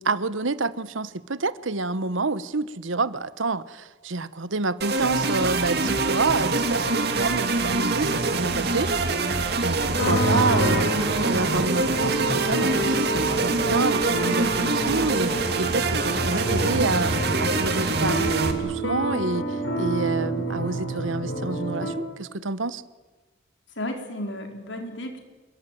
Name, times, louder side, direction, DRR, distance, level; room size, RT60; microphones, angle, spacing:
voice 1, 0.0-8.9 9.6-22.8, right 3 dB, 80° right, 16 dB, 1.1 m, -28 dB
sound 1, 4.8-18.5, right 3 dB, 55° right, 2.6 m, -25 dB
sound 2, 10.0-21.9, right 1 dB, 90° left, 6.0 m, -28 dB
voice 2, 23.8-25.2, left 1 dB, 70° left, 5 dB, 4.5 m, -33 dB
27.5 x 22.0 x 9.3 m, 1.3 s
head